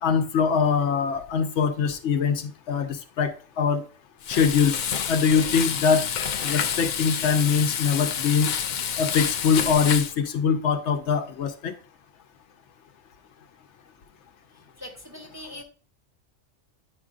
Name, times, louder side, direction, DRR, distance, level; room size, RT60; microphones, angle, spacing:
voice 1, 0.0-3.8 4.3-4.8 5.1-6.1 6.4-8.5 9.0-11.7, left 6 dB, 75° left, 8 dB, 0.9 m, -23 dB
Frying (food), 4.2-10.1, left 8 dB, 60° left, 0.5 m, -28 dB
voice 2, 14.5-15.6, left 1 dB, 15° right, 0 dB, 1.1 m, -42 dB
9.3 x 5.0 x 2.4 m, 0.39 s
omnidirectional pair, 1.2 m